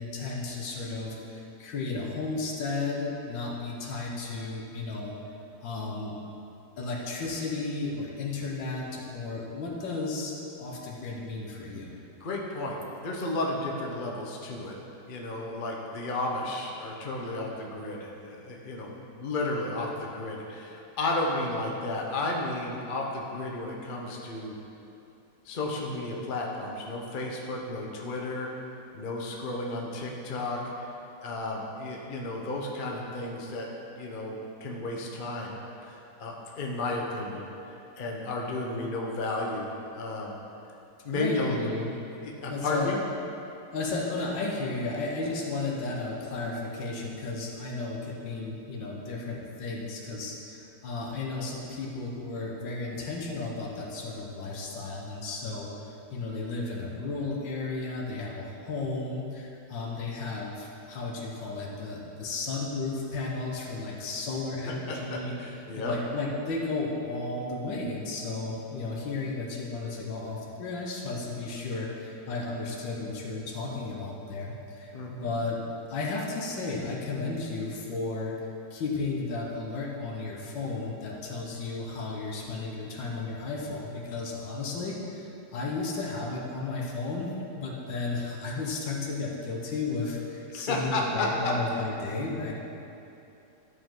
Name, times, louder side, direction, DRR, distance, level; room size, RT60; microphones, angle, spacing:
voice 1, 0.0-5.1 5.6-6.2 6.8-12.0 41.1-41.9 42.5-42.9 43.7-55.7 56.1-65.3 65.8-75.6 75.9-78.4 78.7-92.5, left 3 dB, 75° left, -1 dB, 1.8 m, -34 dB
voice 2, 12.2-14.8 15.0-24.6 25.4-28.5 28.9-30.9 31.2-33.7 34.0-35.6 35.8-37.5 38.0-40.4 41.0-41.5 42.2-43.0 64.9-65.9 74.9-75.3 90.5-91.3, left 2 dB, 45° left, -1 dB, 0.7 m, -33 dB
12.0 x 5.1 x 3.8 m, 2.8 s
omnidirectional pair, 2.0 m